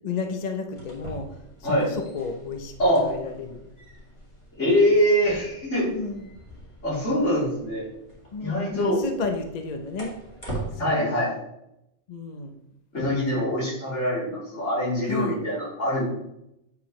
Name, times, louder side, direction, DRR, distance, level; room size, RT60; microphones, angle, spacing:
voice 1, 0.0-1.3 1.6-3.7 5.9-6.3 8.3-10.1 10.8-11.2 12.1-12.5 13.3-13.7 15.1-15.4, left 4 dB, 40° left, 5 dB, 0.7 m, -32 dB
sound 1, 0.7-10.7, right 2 dB, 25° left, 2.0 m, -42 dB
voice 2, 2.8-3.1 4.6-5.9 6.8-7.9 8.4-9.0 10.8-11.3 12.9-16.0, equal, 75° left, -7 dB, 3.6 m, -23 dB
8.6 x 6.0 x 3.1 m, 0.83 s
omnidirectional pair, 1.2 m